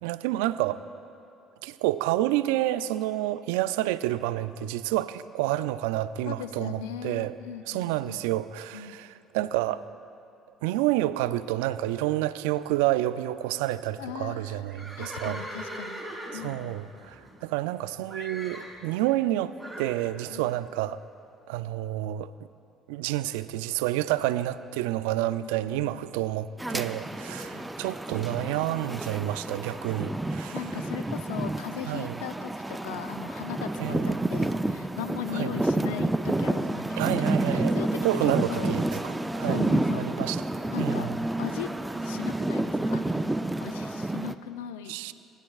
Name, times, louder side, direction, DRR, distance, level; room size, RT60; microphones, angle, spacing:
voice 1, 0.0-0.8 1.6-7.3 7.7-9.8 10.6-15.4 16.3-19.5 19.8-21.0 21.5-22.3 22.9-30.6 31.9-32.2 33.8-34.1 35.3-35.5 37.0-37.8 38.0-39.7 40.0-40.4 40.8-41.2 44.9-45.1, right 15 dB, 80° right, 14 dB, 0.3 m, -29 dB
voice 2, 6.2-8.3 8.7-9.0 14.0-14.6 15.0-16.0 16.3-16.8 20.3-20.6 25.4-26.1 27.4-29.0 30.5-38.7 39.4-40.1 40.7-41.1 41.4-41.7 42.0-43.3 43.6-45.0, left 9 dB, 85° left, 11 dB, 0.5 m, -39 dB
Livestock farm animals working animals, 14.7-17.8 18.1-18.8 19.6-20.0, right 1 dB, 10° left, 3.0 m, -40 dB
sound 1, 26.6-44.3, right 1 dB, 10° right, 0.5 m, -29 dB
19.0 x 9.8 x 2.4 m, 2.5 s
hypercardioid pair, 60°, 0 cm